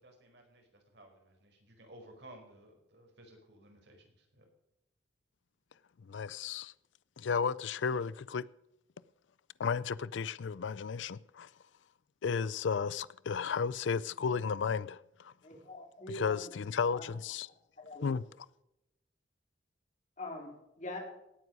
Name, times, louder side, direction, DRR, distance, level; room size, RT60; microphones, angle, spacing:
voice 1, 0.0-4.5, right 1 dB, 60° right, 4.7 m, -56 dB
voice 2, 6.1-6.7 7.2-8.4 9.6-11.5 12.2-15.3 16.1-17.5 18.0-18.2, left 6 dB, 75° left, 0.4 m, -33 dB
voice 3, 15.4-16.4 17.0-17.1 17.4-18.1 20.2-21.0, left 1 dB, 40° left, 4.1 m, -44 dB
18.0 x 9.4 x 5.3 m
head